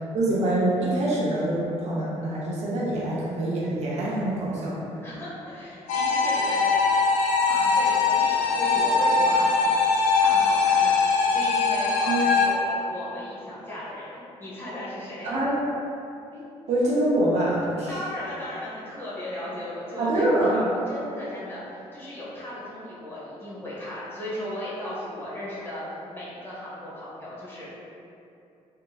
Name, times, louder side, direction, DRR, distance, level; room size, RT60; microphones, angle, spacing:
voice 1, 0.1-4.8 12.0-12.2 15.2-15.5 16.7-18.0 20.0-20.6, right 1 dB, 65° right, -6 dB, 0.8 m, -25 dB
voice 2, 5.0-6.9 7.5-9.8 10.2-15.3 16.3-16.4 17.9-27.7, left 1 dB, 20° left, -9 dB, 1.1 m, -36 dB
sound 1, 5.9-12.5, left 4 dB, 85° left, 0.5 m, -21 dB
3.5 x 2.8 x 2.4 m, 2.7 s
cardioid pair, 110°, 12 cm